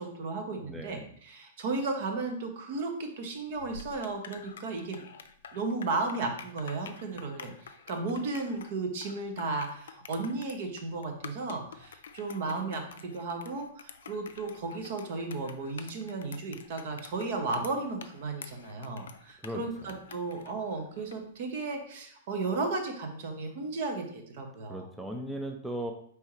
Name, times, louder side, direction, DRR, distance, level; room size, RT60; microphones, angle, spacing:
voice 1, 0.0-5.1 5.5-24.9, right 3 dB, 55° right, 4 dB, 0.8 m, -34 dB
voice 2, 0.6-1.1 19.4-20.0 24.7-25.9, right 1 dB, 5° right, 2 dB, 0.5 m, -37 dB
sound 1, 3.5-21.3, left 6 dB, 70° left, 0.4 m, -49 dB
4.5 x 3.3 x 3.0 m, 0.62 s
figure-of-eight pair, 105°, 0 cm